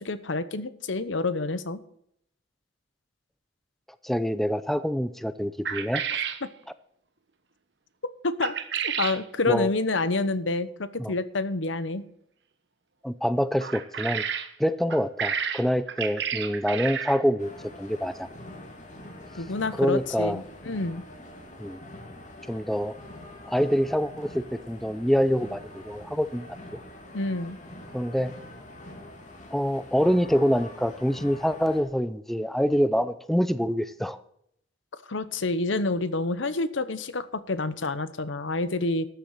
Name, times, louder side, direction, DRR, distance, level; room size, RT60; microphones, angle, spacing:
voice 1, 0.0-1.8 8.2-8.5 8.8-12.0 19.3-21.0 27.1-27.6 35.1-39.1, left 2 dB, 85° left, 14 dB, 1.0 m, -28 dB
voice 2, 4.0-6.0 9.5-9.7 11.0-11.1 13.0-14.2 14.6-17.5 17.8-18.3 19.8-20.4 21.6-21.8 22.5-23.0 23.5-26.5 27.9-28.3 29.5-34.2, equal, ahead, 13 dB, 0.5 m, -25 dB
sound 1, 5.6-6.4 8.4-9.2 13.6-14.5 14.9-17.2, right 7 dB, 60° right, 1.2 m, -31 dB
sound 2, 17.4-31.8, left 1 dB, 40° left, 2.6 m, -45 dB
13.0 x 7.3 x 6.6 m, 0.70 s
head